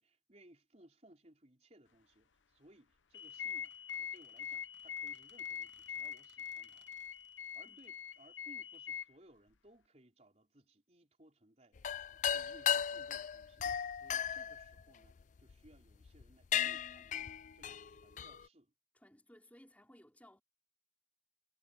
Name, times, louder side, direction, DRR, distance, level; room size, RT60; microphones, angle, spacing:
voice 1, 0.0-6.9 7.5-11.9 12.3-13.7 14.0-17.2 17.5-18.7, right 1 dB, 35° right, 5.0 m, -63 dB
sound 1, 3.1-9.0, left 8 dB, 80° left, 0.8 m, -44 dB
Squeak, 3.2-8.9, right 7 dB, 80° right, 6.1 m, -70 dB
sound 2, 11.8-15.5 16.1-16.2 16.5-18.4, left 9 dB, 40° left, 0.3 m, -36 dB
voice 2, 18.9-20.4, equal, 10° left, 4.2 m, -61 dB
head